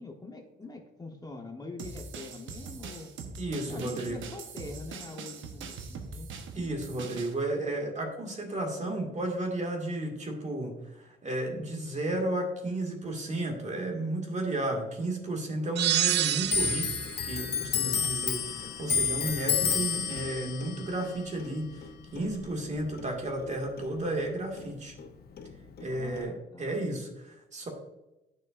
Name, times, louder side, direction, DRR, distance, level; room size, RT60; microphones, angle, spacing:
voice 1, 0.0-3.1 3.7-6.3 25.9-26.7, left 3 dB, 20° left, 1 dB, 1.0 m, -44 dB
sound 1, 1.8-7.3, right 4 dB, 75° right, 1.0 m, -42 dB
voice 2, 3.4-4.2 6.5-16.9 17.2-24.9 25.8-27.7, right 1 dB, 35° right, 1 dB, 2.0 m, -33 dB
sound 2, 15.8-17.1, right 12 dB, 60° right, 0.4 m, -27 dB
Clock, 16.5-23.5 23.8-25.1 25.4-26.2, left 6 dB, 50° left, 0.8 m, -31 dB
10.0 x 6.2 x 2.5 m, 0.98 s
cardioid pair, 90°, 20 cm